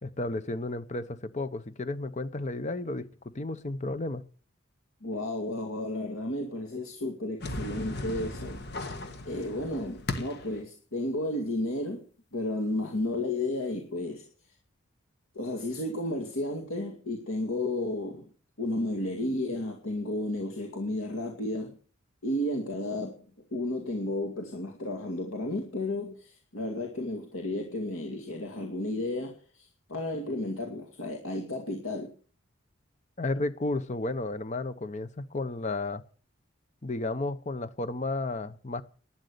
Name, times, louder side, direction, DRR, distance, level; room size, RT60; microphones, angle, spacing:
voice 1, 0.0-3.1 3.3-4.2 33.2-36.0 36.8-38.8, left 2 dB, 35° left, 0.9 m, -32 dB
voice 2, 5.0-9.0 9.3-14.2 15.3-18.3 18.6-21.8 22.2-23.2 23.5-32.1, left 1 dB, 90° left, 2.2 m, -33 dB
sound 1, 7.4-10.6, left 2 dB, 55° left, 1.6 m, -37 dB
12.0 x 10.5 x 6.8 m
head